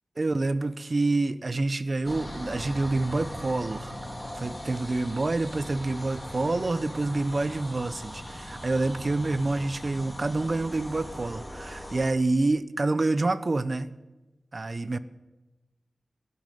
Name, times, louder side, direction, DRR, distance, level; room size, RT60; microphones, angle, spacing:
voice 1, 0.2-4.0 4.4-13.9 14.5-15.0, right 2 dB, 50° right, 16 dB, 0.8 m, -27 dB
sound 1, 2.0-12.1, equal, 20° left, 3.4 m, -40 dB
13.5 x 11.0 x 9.2 m, 1.1 s
cardioid pair, 40°, 0 cm